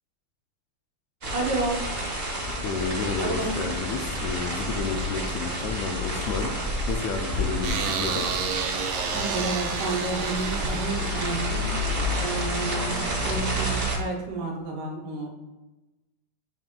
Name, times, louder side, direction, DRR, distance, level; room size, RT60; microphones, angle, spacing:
sound 1, 1.2-14.0, equal, 35° right, 0.9 m, -29 dB
voice 1, 1.3-1.8 3.2-3.5 4.9-5.0 9.1-11.8 12.1-15.3, right 3 dB, 70° right, 0 dB, 2.6 m, -31 dB
voice 2, 2.6-6.6 6.9-8.3, left 4 dB, 80° left, 4 dB, 1.7 m, -31 dB
sound 2, 7.6-12.9, right 7 dB, 85° right, 2.4 m, -32 dB
7.1 x 3.3 x 5.2 m, 1.1 s
omnidirectional pair, 3.8 m